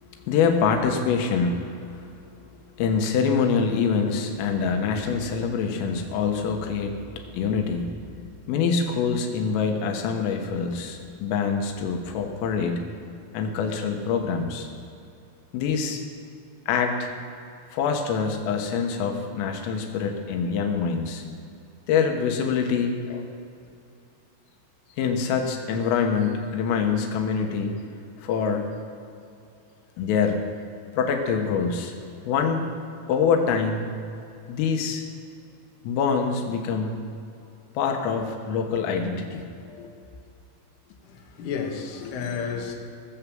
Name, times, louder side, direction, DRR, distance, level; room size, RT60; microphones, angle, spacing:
voice 1, 0.2-2.0 2.4-2.5 2.8-8.2 8.5-12.8 13.3-14.7 15.5-16.0 16.7-17.1 17.7-21.2 21.9-23.3 25.0-27.8 28.2-28.7 30.0-30.5 31.0-31.9 32.3-32.7 33.1-33.9 34.5-35.0 35.8-37.0 37.8-39.4 39.7-39.9 42.0-42.1, left 6 dB, 90° left, 3 dB, 3.9 m, -25 dB
voice 2, 41.0-42.7, left 6 dB, 65° left, 1 dB, 2.2 m, -32 dB
19.5 x 7.2 x 7.6 m, 2.6 s
omnidirectional pair, 5.8 m